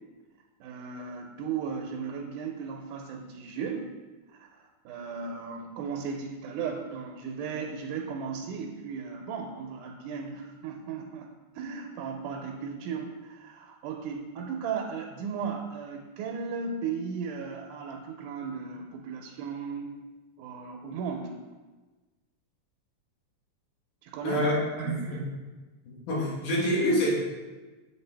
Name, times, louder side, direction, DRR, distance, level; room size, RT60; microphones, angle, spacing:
voice 1, 0.6-3.9 4.4-4.5 4.9-20.0 20.4-21.4 24.0-24.5 24.8-25.2, right 6 dB, 85° right, 1 dB, 2.1 m, -36 dB
voice 2, 24.2-25.2 25.9-27.1, equal, 85° left, -4 dB, 2.9 m, -27 dB
7.0 x 4.3 x 3.3 m, 1.3 s
omnidirectional pair, 3.5 m